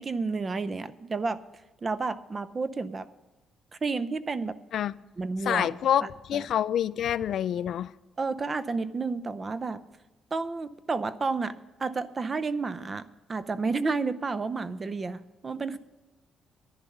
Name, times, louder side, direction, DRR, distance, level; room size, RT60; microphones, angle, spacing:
voice 1, 0.0-1.4 1.8-3.1 3.8-4.6 5.2-5.7 6.0-6.4 8.2-9.8 10.3-11.5 11.8-15.8, right 4 dB, 35° right, 0.6 m, -31 dB
voice 2, 5.4-7.9, left 10 dB, 70° left, 0.3 m, -27 dB
11.0 x 10.5 x 5.4 m
cardioid pair, 90°, 0 cm